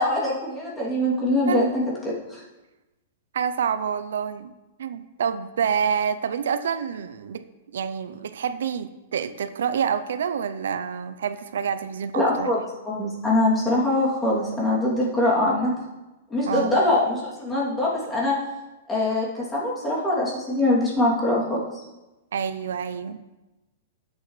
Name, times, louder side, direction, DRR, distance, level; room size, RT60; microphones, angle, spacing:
voice 1, 0.0-2.4 12.1-12.6 12.8-15.7 16.3-18.4 18.9-21.8, left 1 dB, 10° left, -6 dB, 2.9 m, -23 dB
voice 2, 3.3-4.5 4.8-7.4 7.7-12.5 16.5-16.7 22.3-23.2, right 7 dB, 80° right, 12 dB, 0.6 m, -27 dB
12.5 x 8.1 x 3.3 m, 1.1 s
hypercardioid pair, 150°, 0 cm